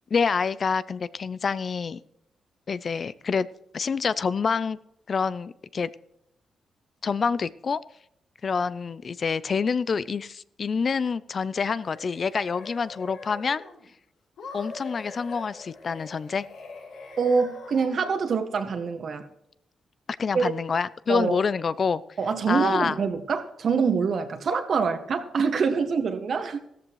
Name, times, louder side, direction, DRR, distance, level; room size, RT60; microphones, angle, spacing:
voice 1, 0.1-2.0 2.7-3.5 3.7-4.8 5.1-5.9 7.0-7.8 8.4-13.6 14.5-16.5 20.2-22.0 22.5-23.0, left 5 dB, 45° left, 17 dB, 0.5 m, -27 dB
sound 1, 11.6-13.9 14.4-18.3, left 3 dB, 85° left, 5.6 m, -43 dB
voice 2, 17.2-19.2 20.3-20.5 21.1-21.4 22.2-26.6, right 5 dB, 60° right, 7 dB, 1.8 m, -25 dB
14.5 x 14.0 x 3.1 m, 0.77 s
cardioid pair, 85°, 0 cm